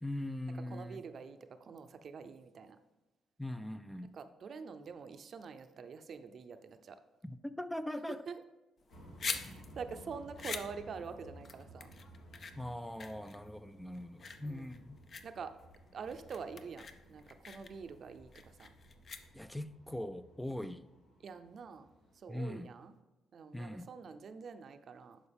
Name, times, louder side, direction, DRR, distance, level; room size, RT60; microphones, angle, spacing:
voice 1, 0.0-1.0 3.4-4.1 7.2-8.2 12.6-15.0 19.3-20.9 22.3-22.7 23.5-23.9, left 1 dB, 5° left, 0.3 m, -41 dB
voice 2, 0.7-2.8 4.0-7.0 8.1-8.4 9.2-11.9 14.4-14.7 15.2-15.5 15.9-18.7 21.2-21.9 22.1-22.9 23.3-25.2, right 5 dB, 55° right, 0.6 m, -46 dB
sound 1, 8.8-19.7, left 5 dB, 50° left, 0.6 m, -45 dB
sound 2, 8.9-22.2, equal, 80° left, 1.9 m, -57 dB
11.0 x 4.6 x 3.5 m
cardioid pair, 90°, 0 cm